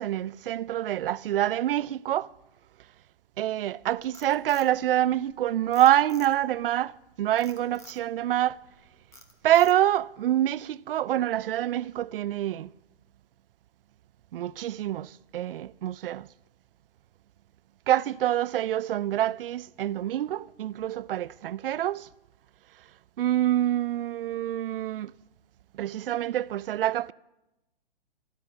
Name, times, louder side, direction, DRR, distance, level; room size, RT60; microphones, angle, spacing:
voice 1, 0.0-2.3 3.4-8.6 9.4-12.7 14.3-16.3 17.9-22.1 23.2-25.1 25.7-27.1, right 12 dB, 65° right, 0.5 m, -26 dB
Frog, 3.8-5.4 5.7-6.6 7.4-8.0 8.5-8.8 9.1-10.0, left 3 dB, 10° left, 1.1 m, -50 dB
13.5 x 12.5 x 6.4 m
hypercardioid pair, 140°, 30 cm